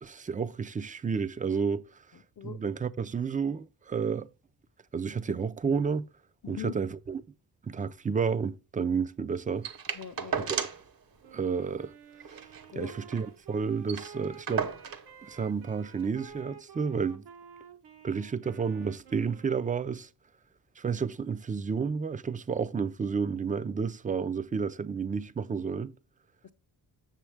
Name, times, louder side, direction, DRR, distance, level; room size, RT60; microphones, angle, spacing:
voice 1, 0.0-1.9 2.4-4.3 4.9-6.1 6.5-7.2 7.7-9.7 10.4-10.7 11.3-11.9 12.8-14.7 15.2-17.3 18.0-20.1 20.8-25.9, right 5 dB, 20° right, 0.4 m, -31 dB
voice 2, 2.1-2.6 6.4-6.7 9.9-10.6 12.7-12.9 26.4-26.5, left 8 dB, 45° left, 0.6 m, -42 dB
sound 1, 9.6-10.9 11.2-11.3 11.6-11.8 12.2-13.3 13.6-13.7 13.9-15.1 16.0-16.1, right 6 dB, 60° right, 1.0 m, -35 dB
Wind instrument woodwind instrument, 11.2-20.1, right 7 dB, 80° right, 1.1 m, -51 dB
7.4 x 7.0 x 3.3 m
wide cardioid pair, 115°, 40 cm